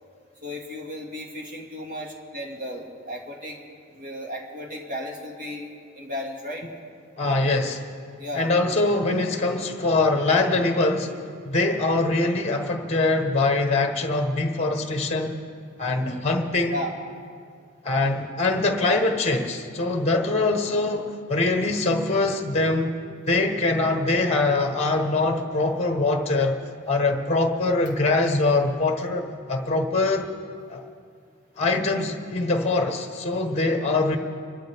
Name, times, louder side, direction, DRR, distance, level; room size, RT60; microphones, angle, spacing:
voice 1, 0.4-3.6 3.9-6.7 8.2-8.5 16.7-17.0, left 1 dB, 40° right, 0 dB, 2.0 m, -34 dB
voice 2, 7.2-7.9 8.3-15.4 15.8-16.8 17.8-22.9 23.3-26.6 26.9-30.3 30.7-30.8 31.6-34.2, left 2 dB, 30° left, 4 dB, 1.1 m, -23 dB
25.5 x 13.0 x 3.5 m, 2.2 s
head